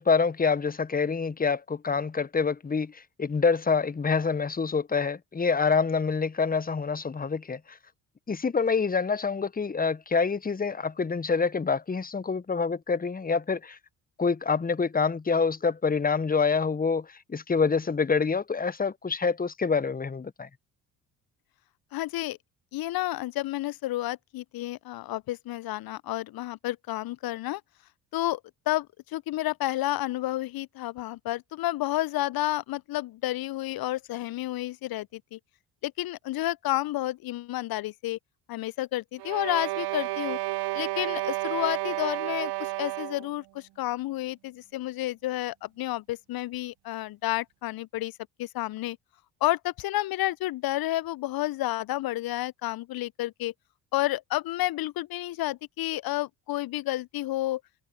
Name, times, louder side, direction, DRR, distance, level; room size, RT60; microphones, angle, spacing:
voice 1, 0.0-7.8 8.3-13.8 14.2-20.5, left 5 dB, 20° left, 1.2 m, -26 dB
voice 2, 21.9-22.4 22.7-27.6 28.1-28.4 28.7-35.4 35.8-38.2 38.5-40.4 40.7-49.0 49.4-53.5 53.9-57.6, left 16 dB, 45° left, 0.9 m, -30 dB
sound 1, 39.2-43.3, right 19 dB, 50° right, 1.1 m, -31 dB
figure-of-eight pair, 50°, 49 cm